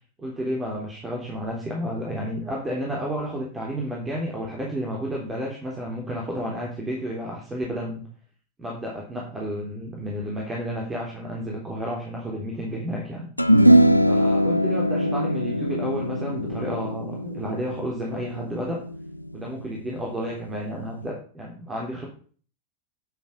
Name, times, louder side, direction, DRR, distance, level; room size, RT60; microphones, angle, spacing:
voice 1, 0.2-8.0 8.6-13.3 14.1-18.8 19.3-22.1, equal, 15° right, -2 dB, 3.3 m, -31 dB
sound 1, 13.4-19.9, equal, 90° left, 0.5 m, -21 dB
10.5 x 7.9 x 5.4 m, 0.42 s
figure-of-eight pair, 90°, 0 cm